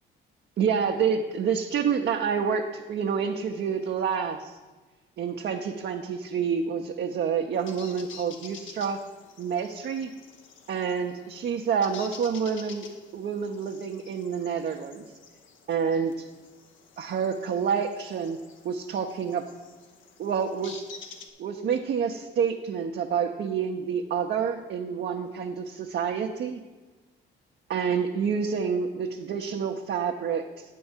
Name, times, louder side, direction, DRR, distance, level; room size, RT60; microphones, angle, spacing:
voice 1, 0.6-4.5 5.2-9.0 9.4-10.1 10.7-12.9 13.1-15.1 15.7-16.1 17.0-18.4 18.6-19.4 20.2-20.8 21.4-26.6 27.7-30.5, right 6 dB, 60° right, 2 dB, 0.7 m, -28 dB
sound 1, 7.5-21.3, left 5 dB, 75° left, 1.0 m, -49 dB
8.5 x 4.6 x 7.1 m, 1.3 s
cardioid pair, 90°, 20 cm